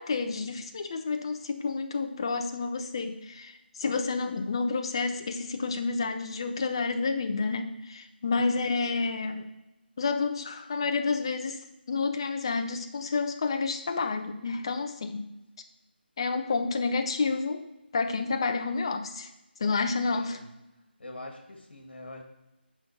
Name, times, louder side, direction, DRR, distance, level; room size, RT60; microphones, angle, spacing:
voice 1, 0.0-9.5 10.0-11.6 11.9-15.3 16.2-17.7 17.9-19.3 19.6-20.4, left 4 dB, 25° left, 7 dB, 0.6 m, -29 dB
voice 2, 8.4-9.0 20.0-20.5 21.0-22.2, left 2 dB, 65° left, 3 dB, 2.3 m, -45 dB
9.9 x 3.8 x 6.7 m, 0.97 s
figure-of-eight pair, 170°, 6 cm